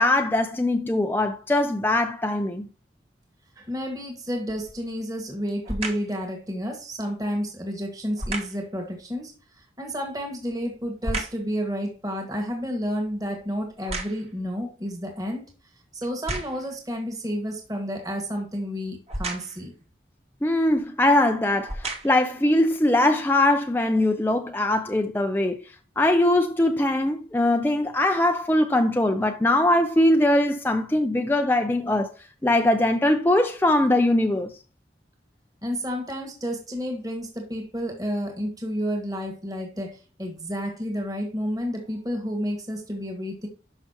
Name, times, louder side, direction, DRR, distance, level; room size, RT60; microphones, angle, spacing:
voice 1, 0.0-2.7 20.4-25.6 26.0-32.1 32.4-34.5, left 1 dB, 10° left, 0.5 m, -21 dB
voice 2, 3.6-9.3 9.8-15.5 15.9-19.7 35.6-43.5, equal, 20° right, 1.8 m, -30 dB
sound 1, 4.5-4.9 5.6-6.2 8.2-8.7 10.1-11.5 12.0-14.5 15.1-15.2 16.0-16.7 19.1-19.7 20.7-20.8 21.5-22.3 22.9-23.0, right 2 dB, 35° right, 1.8 m, -34 dB
11.5 x 5.8 x 2.9 m
head